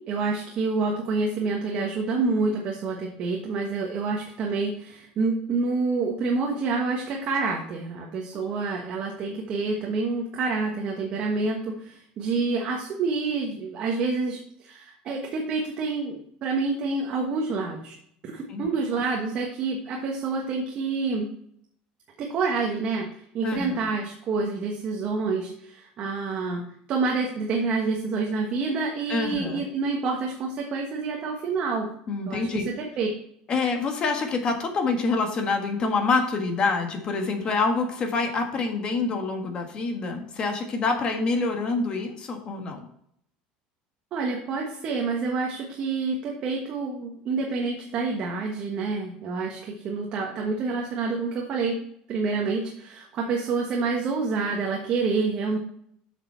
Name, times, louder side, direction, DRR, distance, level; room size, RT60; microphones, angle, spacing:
voice 1, 0.1-17.9 18.2-21.3 22.2-23.1 23.3-26.6 26.9-31.9 32.3-33.1 44.1-51.8 52.1-55.6, right 4 dB, 40° right, 0 dB, 1.3 m, -28 dB
voice 2, 23.4-23.8 29.1-29.6 32.1-32.6 33.5-42.8, left 4 dB, 30° left, 4 dB, 1.5 m, -26 dB
7.7 x 6.3 x 4.5 m, 0.70 s
cardioid pair, 155°, 3 cm